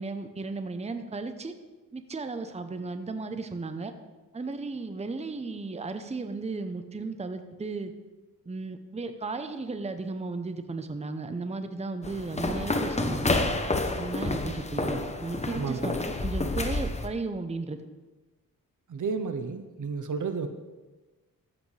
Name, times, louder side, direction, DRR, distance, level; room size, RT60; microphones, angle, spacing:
voice 1, 0.0-1.5 1.9-3.9 4.3-7.9 8.5-13.3 14.0-15.9 16.2-17.8, right 3 dB, 20° right, 9 dB, 0.7 m, -35 dB
sound 1, 12.0-17.1, left 2 dB, 20° left, 0.8 m, -29 dB
voice 2, 15.5-16.0 18.9-20.5, right 5 dB, 60° right, 9 dB, 0.8 m, -32 dB
13.5 x 7.8 x 3.3 m, 1.2 s
cardioid pair, 80°, 34 cm